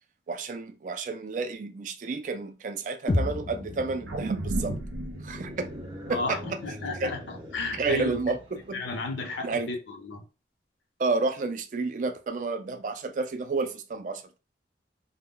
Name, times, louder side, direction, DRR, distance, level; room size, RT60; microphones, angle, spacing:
voice 1, 0.3-4.8 5.2-5.7 6.1-6.4 7.0-7.1 7.8-8.8 9.4-9.7 11.0-14.4, right 3 dB, 45° right, 0.3 m, -30 dB
sound 1, 3.1-7.1, left 2 dB, 30° left, 0.4 m, -34 dB
sound 2, 4.1-8.6 9.0-9.1, right 2 dB, 90° right, 0.6 m, -35 dB
sound 3, 5.2-8.9, equal, 30° right, 0.7 m, -44 dB
voice 2, 6.1-8.2 8.7-10.2, left 3 dB, 85° left, 0.7 m, -33 dB
2.1 x 2.1 x 3.6 m
head